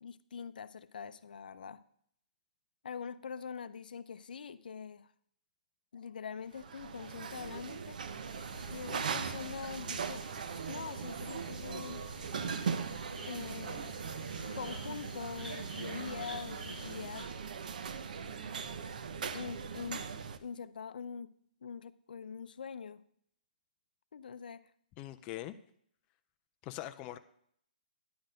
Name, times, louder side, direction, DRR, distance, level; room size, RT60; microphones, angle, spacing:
voice 1, 0.0-1.8 2.8-5.1 5.9-8.0 8.7-10.2 10.7-12.0 13.2-13.9 14.5-17.3 19.3-20.0 20.4-21.3 21.6-23.0 24.1-24.6, left 6 dB, 80° left, 14 dB, 0.5 m, -43 dB
sound 1, 6.5-20.4, right 6 dB, 65° right, 0.7 m, -40 dB
sound 2, 8.2-17.2, right 2 dB, 85° right, 4.2 m, -48 dB
voice 2, 25.0-25.6 26.6-27.2, left 15 dB, 20° left, 7 dB, 0.4 m, -42 dB
10.5 x 4.1 x 6.5 m, 0.66 s
hypercardioid pair, 160°, 5 cm